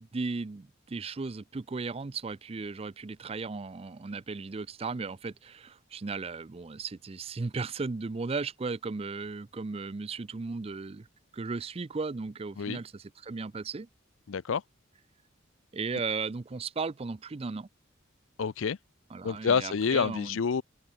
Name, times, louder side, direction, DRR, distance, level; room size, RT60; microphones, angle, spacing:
voice 1, 0.0-11.1 11.3-13.9 15.7-17.7 19.1-20.4, right 4 dB, 30° right, 0.4 m, -36 dB
voice 2, 14.3-14.6 18.4-18.8 19.2-20.6, left 6 dB, 70° left, 0.5 m, -28 dB
head